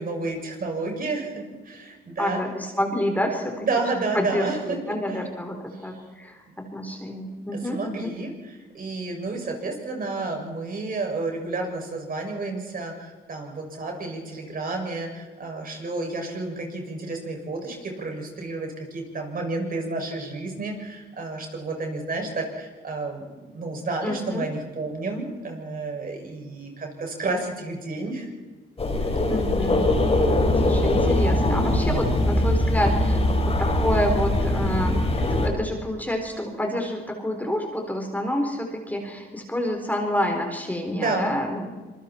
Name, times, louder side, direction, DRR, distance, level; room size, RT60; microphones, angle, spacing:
voice 1, 0.0-2.4 3.6-4.9 7.6-28.3 29.0-29.2 40.9-41.3, right 3 dB, 45° right, 2 dB, 6.7 m, -31 dB
voice 2, 2.2-3.7 4.1-8.1 24.0-24.5 29.3-29.8 30.6-41.7, left 1 dB, 10° left, 3 dB, 4.0 m, -28 dB
sound 1, 28.8-35.5, left 1 dB, 30° left, 5.5 m, -22 dB
26.5 x 23.0 x 4.5 m, 1.3 s
cardioid pair, 90°, 20 cm